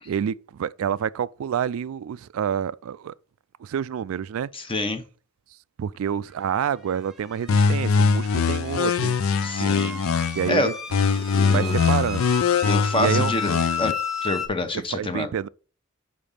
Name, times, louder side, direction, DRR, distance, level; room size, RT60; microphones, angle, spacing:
voice 1, 0.1-3.1 3.6-4.5 5.8-9.2 9.6-9.8 10.3-10.7 11.5-12.3 12.9-13.3 14.7-15.5, right 8 dB, 90° right, 0.3 m, -28 dB
voice 2, 4.5-5.0 9.4-10.0 10.5-10.7 11.3-11.7 12.6-13.9 14.2-15.3, left 2 dB, 25° left, 0.9 m, -27 dB
sound 1, 6.9-14.5, left 5 dB, ahead, 1.0 m, -33 dB
sound 2, 7.5-10.5 10.9-13.9, left 5 dB, 85° left, 0.4 m, -22 dB
5.1 x 5.0 x 5.5 m
head